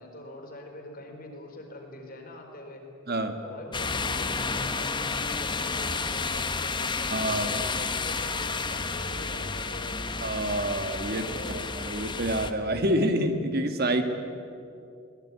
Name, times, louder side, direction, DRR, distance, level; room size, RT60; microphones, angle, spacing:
voice 1, 0.0-2.8 3.4-10.1 11.1-11.6, left 1 dB, 45° left, 2 dB, 4.6 m, -43 dB
voice 2, 3.1-3.4 7.1-7.6 10.2-11.2 11.5-14.0, right 1 dB, 50° right, 7 dB, 1.8 m, -27 dB
sound 1, 3.7-12.5, left 4 dB, 25° left, 1.1 m, -31 dB
22.5 x 20.5 x 9.9 m, 2.6 s
head